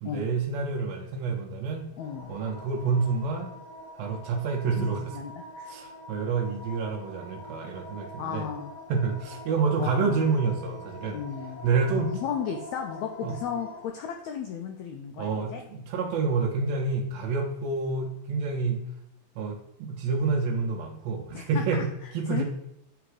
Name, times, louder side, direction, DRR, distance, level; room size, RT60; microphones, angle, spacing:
voice 1, 0.0-1.9 2.3-3.5 4.0-5.2 5.7-8.5 8.9-11.2 11.6-12.1 13.2-13.3 15.2-18.8 19.4-21.9 22.1-22.4, right 4 dB, 80° right, 1 dB, 1.6 m, -28 dB
voice 2, 2.0-2.4 4.7-5.7 8.2-8.7 9.7-10.3 11.1-11.6 12.0-15.7 21.3-21.6 22.0-22.4, left 8 dB, 80° left, 4 dB, 1.6 m, -35 dB
sound 1, 2.0-13.8, left 1 dB, 60° left, 1.0 m, -44 dB
8.8 x 3.4 x 4.7 m, 0.80 s
omnidirectional pair, 3.7 m